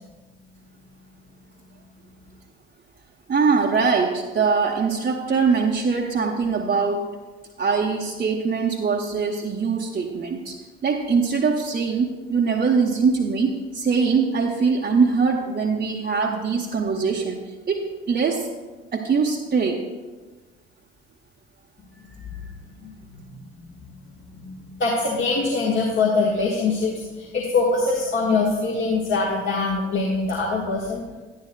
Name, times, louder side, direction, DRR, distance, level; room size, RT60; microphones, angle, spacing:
voice 1, 3.3-7.1 7.6-10.6 10.8-17.4 17.7-18.5 18.9-19.8, right 5 dB, 30° right, -2 dB, 0.8 m, -22 dB
voice 2, 22.8-23.3 23.9-24.0 24.4-31.0, left 3 dB, 40° left, -3 dB, 1.4 m, -23 dB
11.0 x 10.0 x 2.2 m, 1.3 s
figure-of-eight pair, 50°, 32 cm